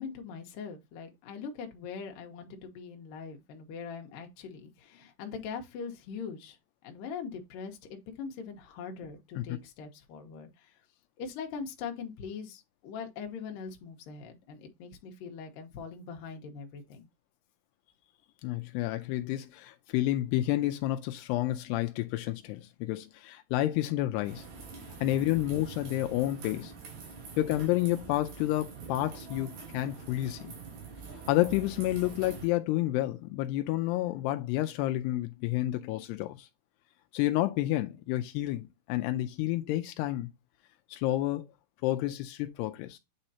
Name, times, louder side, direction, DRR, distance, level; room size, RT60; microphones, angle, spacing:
voice 1, 0.0-6.6 6.8-10.8 11.2-17.1, left 6 dB, 65° left, 2.5 m, -42 dB
voice 2, 18.4-24.5 25.0-26.7 27.4-30.5 31.3-36.5 37.1-40.3 40.9-41.5 41.8-43.0, left 15 dB, 85° left, 2.7 m, -30 dB
sound 1, 24.2-32.5, right 5 dB, 65° right, 4.4 m, -45 dB
8.9 x 4.3 x 2.8 m
omnidirectional pair, 4.8 m